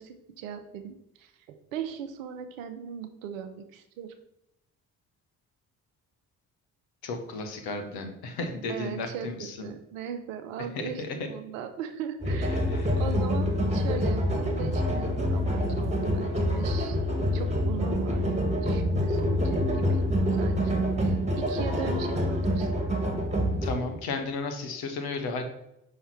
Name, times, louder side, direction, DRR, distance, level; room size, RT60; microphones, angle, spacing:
voice 1, 0.0-4.1 8.7-12.6 13.0-17.0 17.3-20.1 20.3-20.7 21.0-22.7, right 8 dB, 90° right, 8 dB, 0.6 m, -39 dB
voice 2, 7.0-9.7 10.6-11.3 12.5-13.1 23.6-25.4, left 3 dB, 70° left, 6 dB, 1.1 m, -34 dB
sound 1, 12.2-23.8, equal, 15° right, 1.5 m, -26 dB
5.6 x 3.2 x 5.7 m, 0.84 s
hypercardioid pair, 40°, 38 cm